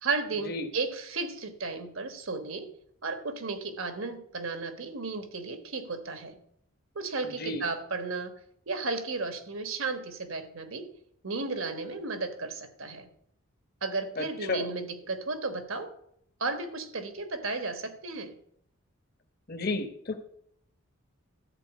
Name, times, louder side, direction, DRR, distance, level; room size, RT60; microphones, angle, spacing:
voice 1, 0.0-2.7 3.0-6.4 6.9-8.3 8.7-10.9 11.2-13.1 13.8-15.9 16.4-18.4, right 3 dB, 70° right, 8 dB, 1.3 m, -34 dB
voice 2, 7.2-7.6 14.2-14.7 19.5-20.2, left 2 dB, 45° left, 7 dB, 1.2 m, -33 dB
13.0 x 4.4 x 8.2 m, 0.70 s
head